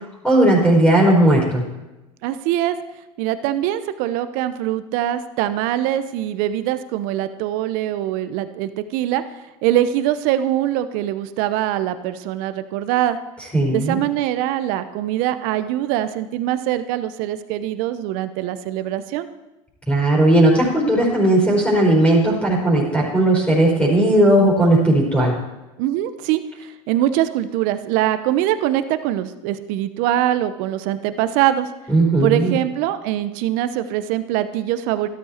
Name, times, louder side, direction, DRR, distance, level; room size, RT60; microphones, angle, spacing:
voice 1, 0.2-1.6 13.5-14.0 19.9-25.4 31.9-32.6, right 1 dB, 10° left, -4 dB, 4.7 m, -16 dB
voice 2, 2.2-2.8 3.2-9.2 9.6-13.2 13.7-19.3 25.8-31.7 32.2-35.1, right 12 dB, 70° right, 12 dB, 0.8 m, -23 dB
13.0 x 12.0 x 4.5 m, 1.0 s
supercardioid pair, 90°, 15 cm